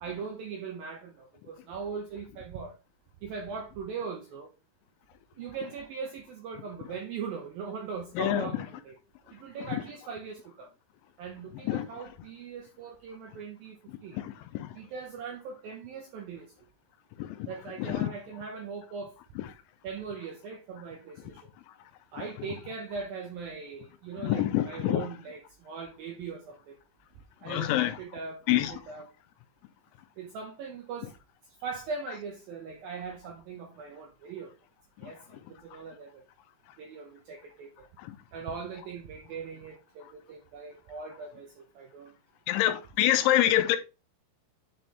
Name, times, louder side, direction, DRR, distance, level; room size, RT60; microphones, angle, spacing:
voice 1, 0.0-2.7 3.2-4.5 5.4-9.0 9.3-10.7 11.2-13.8 14.0-14.2 14.8-16.5 17.5-19.1 19.8-21.4 22.1-26.7 27.4-29.1 30.2-31.1 31.6-34.5 35.0-35.4 35.7-36.2 36.8-37.7 38.3-42.1, right 5 dB, 75° right, 2.1 m, -40 dB
voice 2, 8.2-8.5 11.7-11.9 14.2-14.3 14.6-14.7 17.2-17.5 17.9-18.1 24.2-25.0 27.5-27.9 28.5-28.7 42.5-43.8, left 13 dB, 80° left, 3.1 m, -25 dB
9.8 x 4.3 x 3.3 m
omnidirectional pair, 5.5 m